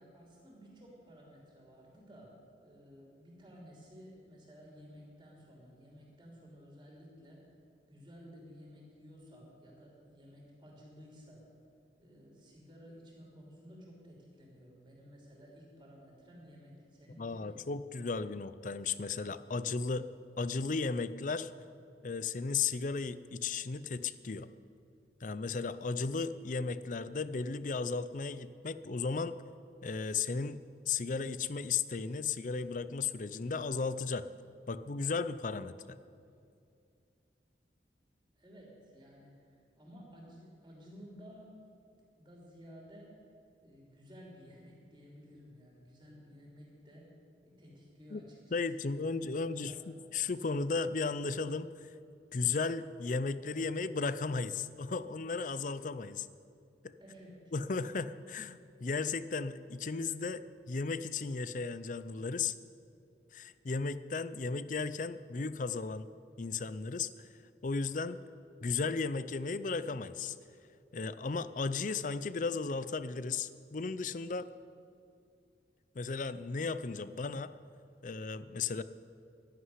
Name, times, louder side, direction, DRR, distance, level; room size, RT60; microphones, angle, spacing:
voice 1, 0.0-7.5 7.9-11.5 12.0-17.6 38.3-41.5 42.2-43.2 43.6-49.0 49.3-49.8 57.0-57.5, equal, 20° right, -3 dB, 3.2 m, -54 dB
voice 2, 17.2-20.1 20.4-21.5 22.0-24.5 25.2-29.4 29.8-30.6 30.9-34.3 34.7-36.0 48.1-48.2 48.5-51.7 52.3-56.3 56.8-56.9 57.5-62.5 63.3-66.1 66.4-67.3 67.6-68.2 68.6-70.4 70.9-74.5 75.9-77.5 78.0-78.8, left 4 dB, 45° left, 14 dB, 0.5 m, -35 dB
11.5 x 11.0 x 9.6 m, 2.5 s
head